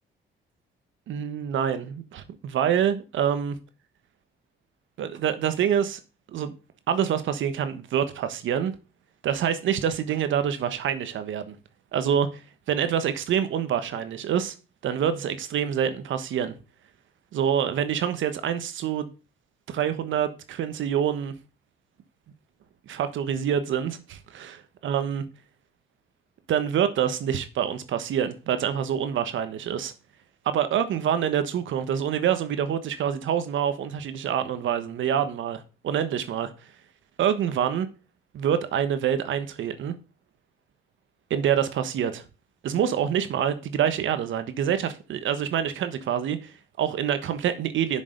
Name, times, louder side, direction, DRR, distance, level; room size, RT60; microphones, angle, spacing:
voice 1, 1.1-3.5 5.0-6.0 6.3-6.5 6.9-8.7 9.2-11.5 11.9-12.3 12.7-14.5 14.8-16.5 17.3-19.1 19.7-21.3 22.9-25.2 26.5-29.9 30.4-36.5 37.2-37.9 38.3-39.9 41.3-42.2 42.6-48.0, right 9 dB, 75° right, 1.3 m, -26 dB
7.3 x 6.5 x 5.2 m
cardioid pair, 90°, 20 cm